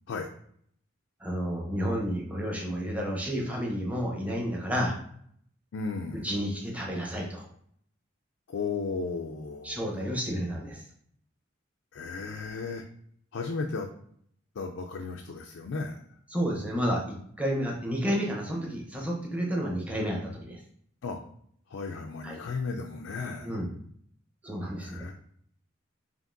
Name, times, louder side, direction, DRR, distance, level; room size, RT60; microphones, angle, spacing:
voice 1, 1.2-4.9 6.2-7.4 9.6-10.8 16.3-20.6 22.2-22.4 23.4-23.7 24.4-25.0, equal, 5° right, -2 dB, 0.8 m, -31 dB
voice 2, 5.7-6.3 8.5-10.2 11.9-12.8 13.3-13.9 14.6-16.0 21.0-21.2 21.7-23.5 24.8-25.1, left 4 dB, 70° left, 2 dB, 0.4 m, -35 dB
5.1 x 2.8 x 2.6 m, 0.65 s
head